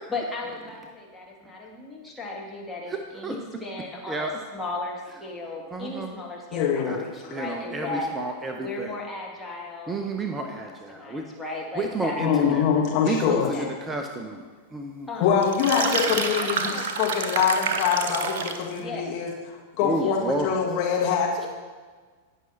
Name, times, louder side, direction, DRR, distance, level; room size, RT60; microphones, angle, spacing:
voice 1, 0.1-8.1 8.6-10.5 10.9-12.6 13.3-13.9 15.1-15.3 15.8-16.8 18.7-19.1 20.0-20.1, left 2 dB, 10° left, -3 dB, 2.2 m, -36 dB
voice 2, 4.1-4.4 5.7-6.1 6.9-7.0 7.3-8.9 9.9-11.2 11.8-12.6 13.0-14.5 14.7-15.1 19.8-20.5, right 2 dB, 15° right, 4 dB, 0.7 m, -30 dB
voice 3, 6.5-7.0 7.2-7.3 12.2-13.5 15.2-19.3 19.8-21.5, left 7 dB, 40° left, -2 dB, 1.9 m, -24 dB
sound 1, 15.4-18.7, right 5 dB, 55° right, 0.9 m, -28 dB
18.0 x 6.1 x 2.9 m, 1.4 s
figure-of-eight pair, 90°, 0 cm